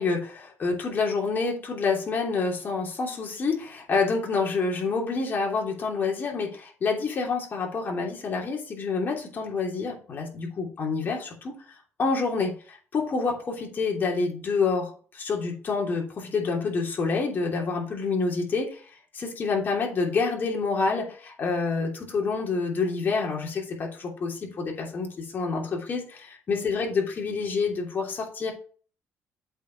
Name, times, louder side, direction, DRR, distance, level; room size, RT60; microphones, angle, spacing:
voice 1, 0.0-11.5 12.0-18.8 19.1-28.5, left 4 dB, 40° left, 0 dB, 3.0 m, -28 dB
8.1 x 4.9 x 5.6 m, 0.42 s
cardioid pair, 120°, 5 cm